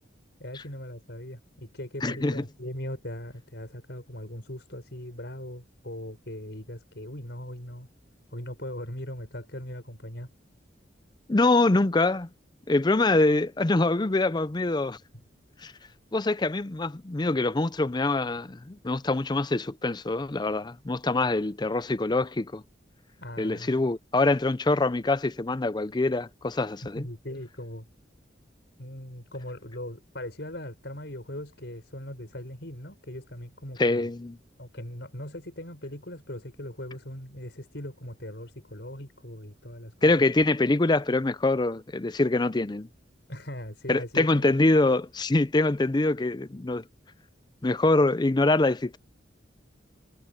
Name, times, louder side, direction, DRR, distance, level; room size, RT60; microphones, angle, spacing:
voice 1, 0.4-7.9 8.3-10.3 23.2-23.9 27.0-27.9 28.8-34.1 34.6-40.1 43.3-44.8, left 1 dB, 60° left, 6.9 m, -39 dB
voice 2, 2.0-2.4 11.3-12.3 12.7-15.0 15.6-15.7 16.1-22.6 23.4-27.1 33.8-34.4 40.0-42.9 43.9-46.8 47.6-49.0, left 2 dB, 25° left, 0.5 m, -24 dB
head